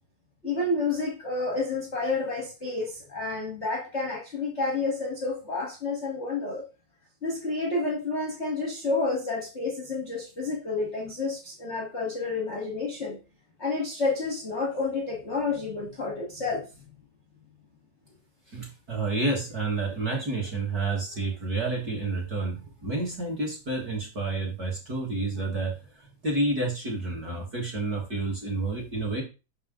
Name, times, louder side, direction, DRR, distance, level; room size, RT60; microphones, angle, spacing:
voice 1, 0.4-6.6 7.2-13.2 13.6-16.8, left 3 dB, 45° left, -1 dB, 0.8 m, -30 dB
voice 2, 18.5-29.2, right 3 dB, 40° right, -2 dB, 1.7 m, -30 dB
6.2 x 5.4 x 3.6 m, 0.30 s
omnidirectional pair, 3.4 m